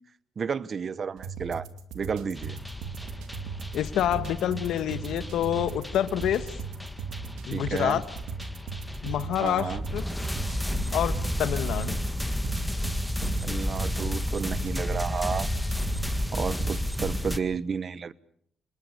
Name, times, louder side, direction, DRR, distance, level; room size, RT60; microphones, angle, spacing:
voice 1, 0.4-1.7 1.9-2.6 7.5-8.0 9.4-9.8 13.2-15.5 16.3-18.1, right 6 dB, 45° right, 1.0 m, -31 dB
sound 1, 1.2-17.2, right 5 dB, 90° right, 2.5 m, -39 dB
sound 2, 2.4-17.4, left 1 dB, 5° left, 1.8 m, -32 dB
voice 2, 3.7-6.5 7.5-8.0 9.0-10.0 10.9-12.0, left 11 dB, 80° left, 1.4 m, -27 dB
28.0 x 20.5 x 6.7 m
cardioid pair, 90°, 0 cm